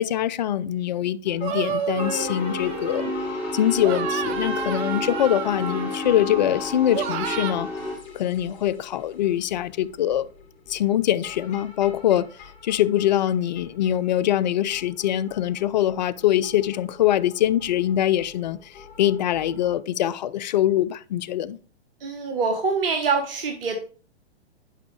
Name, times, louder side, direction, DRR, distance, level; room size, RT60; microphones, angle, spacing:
voice 1, 0.0-3.1 3.5-7.7 8.1-10.3 10.7-12.3 12.6-21.6, left 11 dB, 45° left, 0.4 m, -23 dB
sound 1, 1.3-19.7, left 6 dB, 25° left, 4.3 m, -47 dB
sound 2, 1.4-3.3 3.8-6.5 6.9-7.5, right 8 dB, 25° right, 0.7 m, -31 dB
sound 3, 1.9-8.0, left 1 dB, 5° right, 4.1 m, -30 dB
voice 2, 22.0-23.8, right 4 dB, 55° right, 1.4 m, -25 dB
11.0 x 5.2 x 3.2 m
figure-of-eight pair, 115°, 33 cm